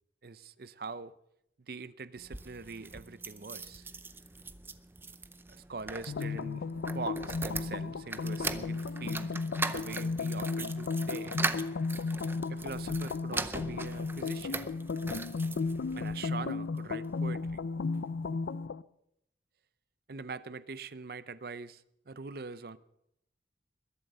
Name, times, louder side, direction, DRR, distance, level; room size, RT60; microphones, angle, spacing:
voice 1, 0.2-1.1 1.6-3.8 5.5-9.4 9.7-11.4 12.1-14.6 16.0-17.6 20.1-22.8, right 4 dB, 55° right, 0.6 m, -43 dB
sound 1, 2.2-16.2 16.8-17.6 17.9-18.0 18.2-18.3, right 3 dB, 10° right, 0.5 m, -40 dB
sound 2, 6.1-18.8, left 4 dB, 90° left, 0.5 m, -34 dB
21.5 x 7.6 x 6.7 m
head